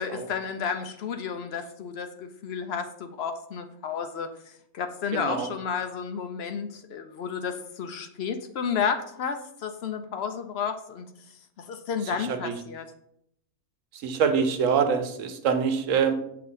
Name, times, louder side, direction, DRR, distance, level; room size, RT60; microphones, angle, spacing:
voice 1, 0.0-4.3 4.7-11.1 11.7-12.9, left 6 dB, 65° left, 7 dB, 0.6 m, -32 dB
voice 2, 5.1-5.5 12.0-12.5 13.9-16.1, right 6 dB, 65° right, 7 dB, 1.0 m, -25 dB
6.8 x 2.8 x 5.4 m, 0.73 s
omnidirectional pair, 1.5 m